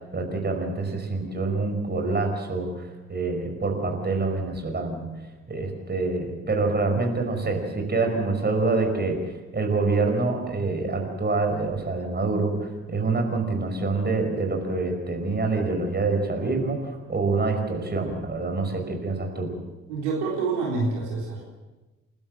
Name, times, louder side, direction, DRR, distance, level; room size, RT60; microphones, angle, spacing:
voice 1, 0.1-5.1 5.5-19.5, right 3 dB, 25° right, 4 dB, 5.3 m, -26 dB
voice 2, 19.9-21.6, right 4 dB, 75° right, -3 dB, 4.0 m, -27 dB
29.5 x 12.5 x 7.5 m, 1.1 s
figure-of-eight pair, 45°, 36 cm